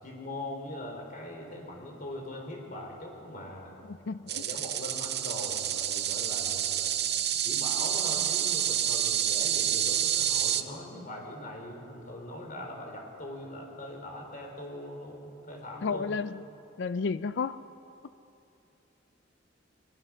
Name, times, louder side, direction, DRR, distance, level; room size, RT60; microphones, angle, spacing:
voice 1, 0.0-3.7 4.2-7.0 7.3-16.1, left 1 dB, 45° left, 1 dB, 4.4 m, -41 dB
voice 2, 3.8-4.4 15.8-16.4 16.8-17.6, left 5 dB, 60° left, 13 dB, 0.4 m, -32 dB
sound 1, 4.3-10.6, right 10 dB, 55° right, 0.9 m, -28 dB
23.0 x 21.5 x 6.4 m, 2.8 s
head